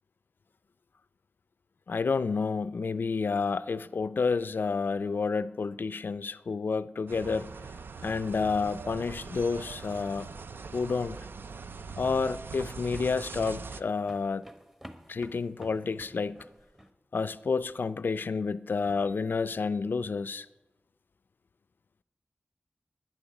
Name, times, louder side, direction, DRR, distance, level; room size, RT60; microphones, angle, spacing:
voice 1, 1.9-7.5 8.0-10.3 10.7-11.2 12.0-14.5 15.1-16.4 17.1-20.5, left 4 dB, 70° left, 0.3 m, -30 dB
sound 1, 7.1-13.8, right 5 dB, 85° right, 0.4 m, -42 dB
sound 2, 11.2-16.9, equal, 15° right, 0.9 m, -51 dB
13.5 x 9.5 x 5.0 m
wide cardioid pair, 70°, 4 cm